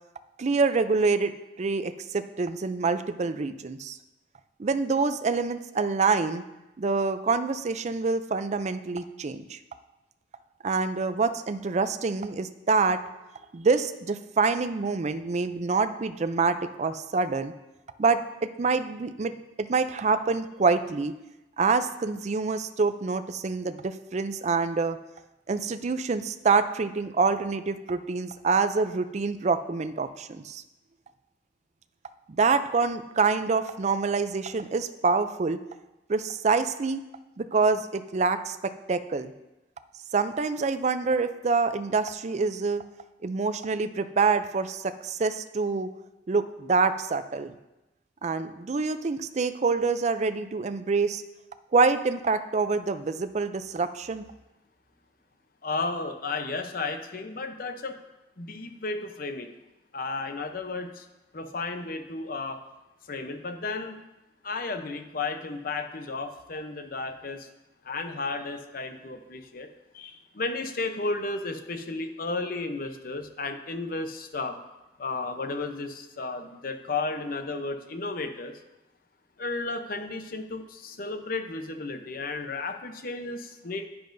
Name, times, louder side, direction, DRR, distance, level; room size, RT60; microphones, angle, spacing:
voice 1, 0.4-4.0 4.6-6.4 6.8-9.6 10.6-13.0 13.5-17.5 18.0-21.1 21.6-25.0 25.5-30.6 32.3-35.6 36.1-37.0 37.4-39.3 40.1-42.8 43.2-45.9 46.3-47.5 48.2-51.2 51.7-54.2, right 4 dB, 40° right, 11 dB, 0.4 m, -26 dB
voice 2, 55.6-57.9 58.4-59.5 59.9-61.0 61.3-62.6 63.1-64.0 64.4-67.5 67.8-69.7 69.9-74.6 75.0-78.6 79.4-83.9, left 3 dB, 55° left, 6 dB, 0.7 m, -33 dB
10.0 x 9.5 x 2.6 m, 0.99 s
head